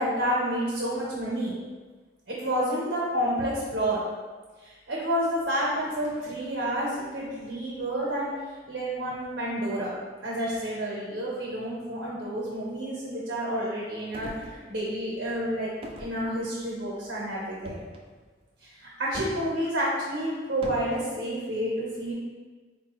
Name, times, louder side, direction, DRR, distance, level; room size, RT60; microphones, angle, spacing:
voice 1, 0.0-1.5 2.3-4.0 4.6-10.0 10.2-15.7 16.0-17.8 18.6-22.1, equal, 70° right, -5 dB, 0.8 m, -29 dB
sound 1, 14.1-15.1 15.8-16.8 17.6-18.1 19.1-19.5 20.6-21.0, right 1 dB, 30° right, 0.3 m, -41 dB
4.1 x 2.2 x 3.0 m, 1.4 s
head